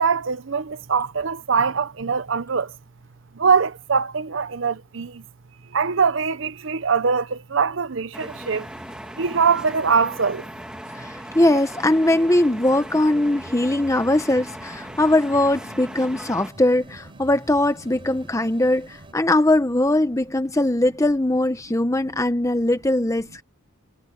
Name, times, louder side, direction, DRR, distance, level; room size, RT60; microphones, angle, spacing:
voice 1, 0.0-2.7 3.4-5.2 5.7-8.7 9.2-10.5, right 5 dB, 65° right, 0.7 m, -22 dB
sound 1, 8.1-16.5, equal, 5° right, 2.2 m, -38 dB
Organ Pad, 8.2-19.1, right 1 dB, 25° right, 6.8 m, -47 dB
voice 2, 10.9-23.4, left 1 dB, 15° left, 0.8 m, -20 dB
head